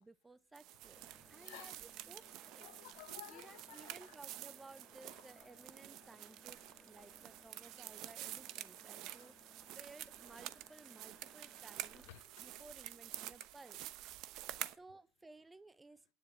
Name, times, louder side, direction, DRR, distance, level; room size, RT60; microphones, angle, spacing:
voice 1, 0.0-1.7 2.1-2.7 3.3-9.4 9.7-12.0 12.4-13.8 14.8-16.0, right 3 dB, 10° right, 0.5 m, -58 dB
sound 1, 0.5-14.8, right 14 dB, 50° right, 0.9 m, -49 dB
sound 2, 0.9-12.2, left 2 dB, 5° left, 1.5 m, -66 dB
voice 2, 1.3-1.8 2.2-4.2 5.1-5.6 6.6-7.2 8.6-8.8 9.1-9.3 11.9-12.6 14.3-14.8, left 17 dB, 70° left, 0.7 m, -58 dB
9.8 x 7.5 x 6.8 m
supercardioid pair, 135°, 0 cm